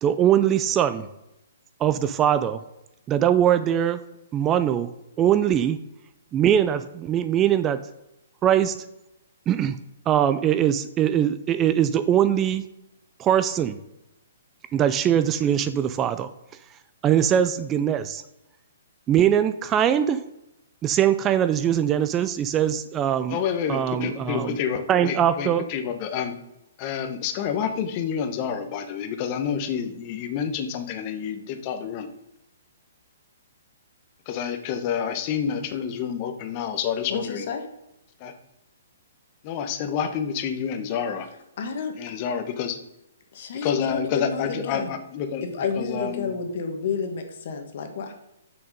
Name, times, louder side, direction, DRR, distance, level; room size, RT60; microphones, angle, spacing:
voice 1, 0.0-1.1 1.8-2.6 3.1-4.0 4.3-4.9 5.2-5.8 6.3-7.8 8.4-8.7 9.5-9.8 10.1-12.6 13.2-13.8 14.7-16.3 17.0-18.2 19.1-20.2 20.8-23.4 23.7-24.6 24.9-25.6, right 10 dB, 20° right, 12 dB, 0.4 m, -21 dB
voice 2, 23.3-26.4 26.8-32.1 34.3-37.4 38.2-38.3 39.4-41.3 42.0-42.8 43.5-46.3, left 7 dB, 35° left, 8 dB, 1.0 m, -28 dB
voice 3, 37.1-37.6 41.6-41.9 43.3-44.9 45.5-48.1, left 5 dB, 55° left, 6 dB, 1.4 m, -30 dB
6.2 x 6.1 x 5.2 m, 0.89 s
hypercardioid pair, 145°, 0 cm